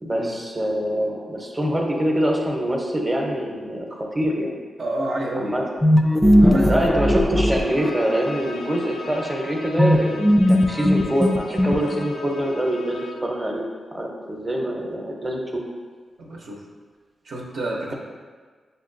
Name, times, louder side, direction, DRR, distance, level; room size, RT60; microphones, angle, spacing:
voice 1, 0.0-4.5 5.3-5.6 6.7-13.6 13.9-15.6, equal, 20° right, 0 dB, 0.7 m, -24 dB
voice 2, 4.8-5.6 6.4-7.2 16.2-16.6 17.2-17.9, right 1 dB, 75° right, -2 dB, 0.7 m, -28 dB
sound 1, 5.8-8.4 9.8-12.2, equal, 10° left, 0.3 m, -18 dB
Bowed string instrument, 7.6-13.3, left 2 dB, 85° left, 0.6 m, -39 dB
6.6 x 2.3 x 2.5 m, 1.5 s
cardioid pair, 65°, 0 cm